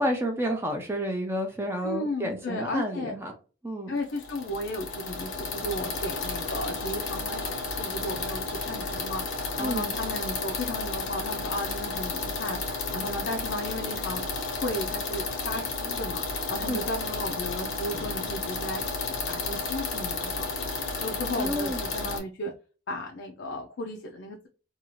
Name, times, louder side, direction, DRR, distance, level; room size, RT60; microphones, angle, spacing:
voice 1, 0.0-3.3 3.6-4.0 9.6-10.0 16.7-16.8 21.3-21.8, equal, 10° right, 0.4 m, -30 dB
voice 2, 1.8-3.1 3.9-9.2 9.6-14.2 14.6-16.2 16.5-20.6 21.0-22.5 22.9-24.5, left 1 dB, 65° left, 0.4 m, -34 dB
sound 1, 4.0-22.2, left 3 dB, 85° left, 0.9 m, -32 dB
2.7 x 2.4 x 2.9 m
head